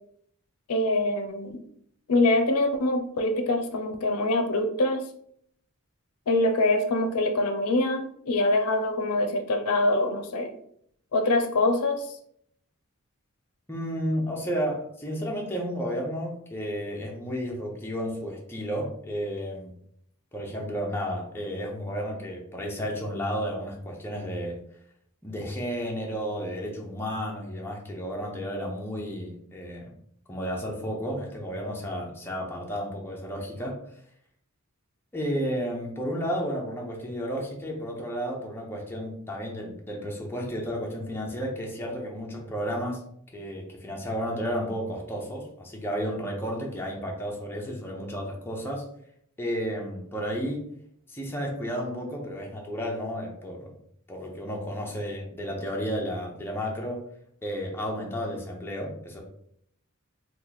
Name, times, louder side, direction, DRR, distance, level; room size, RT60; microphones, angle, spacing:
voice 1, 0.7-1.6 2.1-5.1 6.3-10.5 11.1-12.1, left 2 dB, 85° left, 6 dB, 0.5 m, -24 dB
voice 2, 13.7-19.7 20.3-24.6 25.2-29.9 30.3-33.8 35.1-43.0 43.3-48.9 49.4-50.7 51.1-53.7 54.1-57.0 57.4-59.2, equal, 10° left, -2 dB, 0.6 m, -32 dB
3.0 x 2.3 x 3.8 m, 0.68 s
head